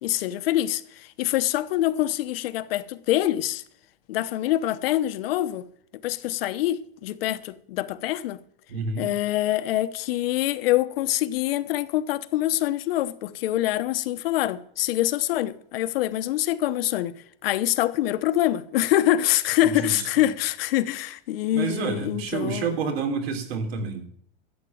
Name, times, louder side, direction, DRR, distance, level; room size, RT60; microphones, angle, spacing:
voice 1, 0.0-3.6 4.1-5.7 6.0-8.4 9.0-17.2 17.4-22.8, left 14 dB, 70° left, 1.0 m, -25 dB
voice 2, 8.7-9.1 19.8-20.0 21.5-24.0, right 5 dB, 80° right, 3.5 m, -28 dB
13.0 x 8.2 x 9.2 m
supercardioid pair, 175°, 30 cm